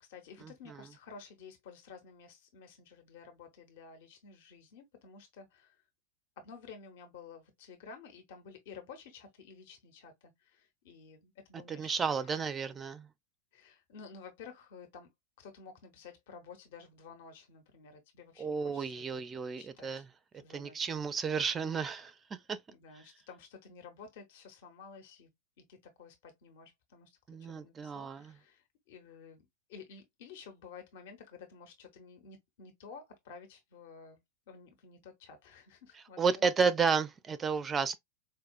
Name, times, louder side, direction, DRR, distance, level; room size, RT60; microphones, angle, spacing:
voice 1, 0.0-5.8 6.4-12.4 13.5-15.1 15.4-19.2 19.6-20.0 20.3-21.1 22.7-25.3 25.6-34.2 34.5-36.5, left 5 dB, 50° left, 0.9 m, -52 dB
voice 2, 11.7-13.1 18.4-20.0 20.5-22.1 22.5-22.6 27.3-28.3 36.2-38.0, right 5 dB, 20° right, 0.4 m, -32 dB
4.6 x 2.3 x 2.3 m
figure-of-eight pair, 90°, 0 cm